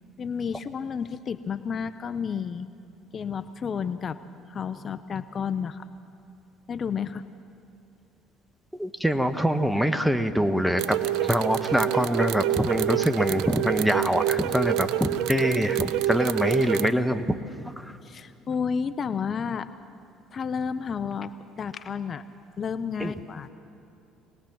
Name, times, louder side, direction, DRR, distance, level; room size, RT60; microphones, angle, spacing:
voice 1, 0.2-2.7 3.1-4.2 4.5-5.9 6.7-7.2 18.0-19.7 20.3-22.2 22.6-23.5, left 6 dB, 45° left, 12 dB, 0.6 m, -31 dB
voice 2, 8.8-17.4 17.6-18.0 23.0-23.1, equal, 5° right, 9 dB, 1.3 m, -24 dB
sound 1, 10.8-16.9, right 13 dB, 70° right, 0.5 m, -27 dB
23.5 x 19.0 x 6.1 m, 2.6 s
hypercardioid pair, 60°, 0 cm